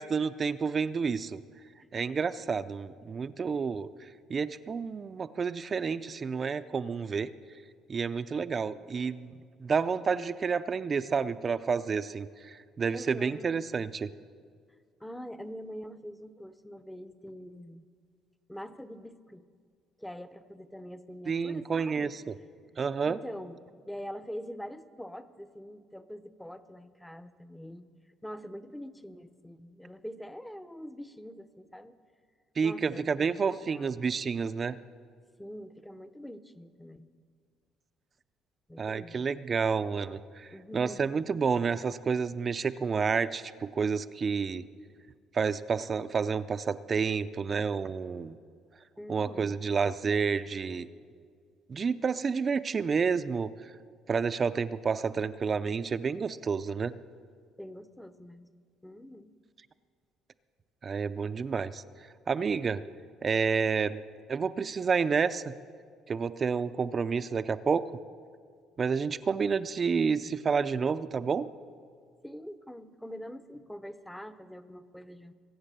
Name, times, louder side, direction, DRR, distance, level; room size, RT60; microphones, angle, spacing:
voice 1, 0.0-1.4 1.9-3.9 4.3-7.3 7.9-9.3 9.6-14.1 21.3-22.2 22.8-23.2 32.6-34.8 38.8-44.6 45.3-48.4 49.1-50.9 51.7-53.5 54.1-56.9 60.8-61.8 62.3-62.8 63.2-64.0 64.3-65.5 66.1-68.0 68.8-71.5, right 5 dB, 30° right, 13 dB, 0.4 m, -29 dB
voice 2, 12.9-13.6 15.0-17.9 18.5-19.5 20.0-22.1 23.1-27.9 28.2-32.0 32.6-34.0 34.7-34.8 35.4-37.1 38.7-39.3 40.5-41.0 49.0-49.6 57.6-58.5 58.8-59.4 62.7-63.0 72.2-75.3, equal, 5° left, 12 dB, 0.7 m, -44 dB
23.5 x 8.1 x 6.8 m, 2.1 s
cardioid pair, 120°, 0 cm